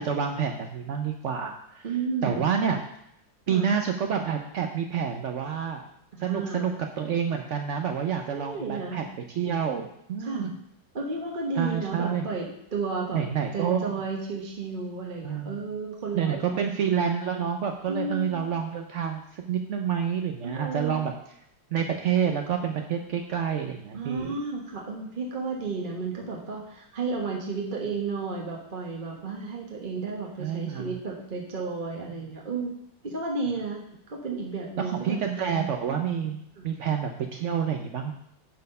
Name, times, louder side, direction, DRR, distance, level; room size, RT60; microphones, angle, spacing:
voice 1, 0.0-1.9 2.2-2.8 3.5-5.8 6.2-10.5 11.6-12.3 13.1-13.9 15.2-15.6 16.1-21.1 21.7-24.3 30.4-31.0 34.8-38.1, right 7 dB, 75° right, 4 dB, 0.6 m, -28 dB
voice 2, 1.8-2.5 3.5-3.7 6.1-6.8 8.3-9.0 10.2-10.5 10.9-13.2 13.5-16.6 17.9-18.5 20.4-21.1 23.9-32.7 33.0-35.6 36.6-36.7, right 4 dB, 35° right, -1 dB, 1.0 m, -33 dB
10.5 x 4.2 x 5.4 m, 0.74 s
omnidirectional pair, 2.0 m